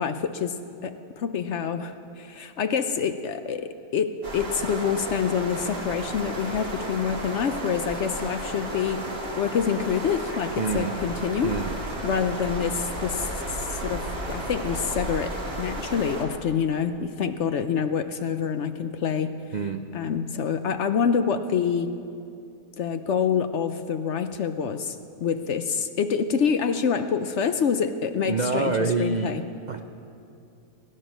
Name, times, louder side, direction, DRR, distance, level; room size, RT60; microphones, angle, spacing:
voice 1, 0.0-11.6 12.0-13.3 13.6-19.4 19.9-21.9 22.8-28.7 29.0-29.4, left 7 dB, 60° left, 9 dB, 0.8 m, -27 dB
sound 1, 4.2-16.2, right 1 dB, 40° right, 2.1 m, -33 dB
voice 2, 10.6-10.9 11.4-11.7 19.5-19.8 28.3-29.4 29.7-29.8, right 4 dB, 75° right, 7 dB, 0.4 m, -26 dB
21.0 x 10.5 x 6.1 m, 2.6 s
omnidirectional pair, 1.6 m